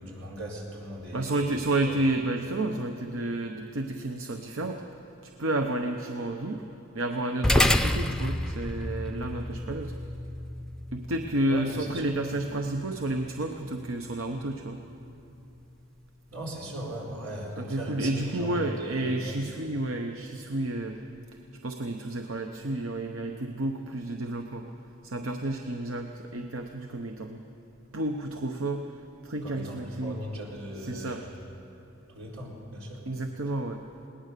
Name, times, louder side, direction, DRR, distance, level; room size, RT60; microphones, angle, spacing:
voice 1, 0.0-1.5 1.9-2.0 11.5-11.8 16.3-19.4 29.4-31.4 32.1-33.0, equal, 90° right, -2 dB, 4.3 m, -38 dB
voice 2, 1.1-4.8 5.2-6.7 6.9-9.9 10.9-14.8 17.6-21.0 21.6-24.7 25.0-27.4 27.9-30.2 30.8-31.3 33.1-33.8, right 2 dB, 70° right, 4 dB, 0.9 m, -31 dB
sound 1, 7.4-16.1, left 1 dB, 5° left, 0.5 m, -31 dB
20.5 x 19.0 x 6.8 m, 2.8 s
head